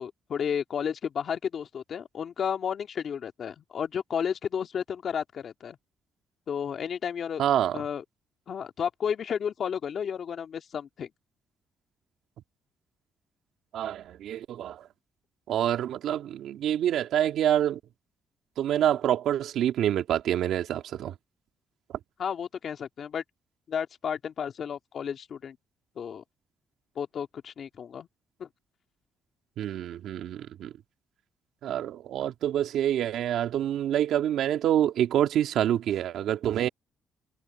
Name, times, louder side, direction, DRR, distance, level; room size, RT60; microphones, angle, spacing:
voice 1, 0.0-5.8 6.5-7.4 7.7-8.0 8.5-11.1 22.2-23.2 23.7-25.6 26.0-26.2 27.0-28.1 28.4-28.5, left 7 dB, 55° left, 2.0 m, -32 dB
voice 2, 7.4-7.8 13.7-14.9 15.5-17.8 18.6-21.1 29.6-30.7 31.6-36.7, right 11 dB, 75° right, 2.7 m, -27 dB
cardioid pair, 90°, 0 cm